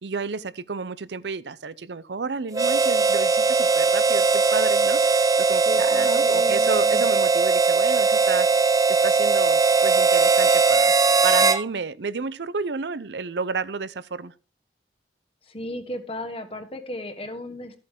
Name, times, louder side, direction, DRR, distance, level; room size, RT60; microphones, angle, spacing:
voice 1, 0.0-5.0 5.5-8.5 8.9-11.0 11.2-14.3, right 4 dB, 80° right, 0.6 m, -31 dB
Harmonica, 2.5-11.6, right 4 dB, 20° right, 0.7 m, -19 dB
voice 2, 5.6-7.0 15.4-17.8, left 1 dB, 35° left, 1.4 m, -35 dB
13.5 x 8.5 x 3.7 m
head